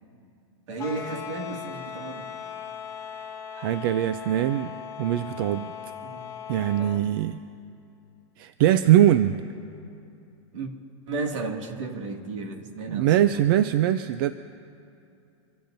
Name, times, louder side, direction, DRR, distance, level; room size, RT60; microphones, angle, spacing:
voice 1, 0.7-2.3 6.0-6.4 6.7-7.0 10.5-10.7 11.1-13.4, right 3 dB, 75° right, 3 dB, 2.2 m, -34 dB
sound 1, 0.8-7.0, left 8 dB, 20° left, 2.3 m, -39 dB
voice 2, 3.5-5.7 6.5-7.4 8.4-9.3 12.9-14.3, right 12 dB, 50° right, 12 dB, 0.4 m, -22 dB
25.5 x 15.5 x 2.6 m, 2.6 s
supercardioid pair, 155°, 16 cm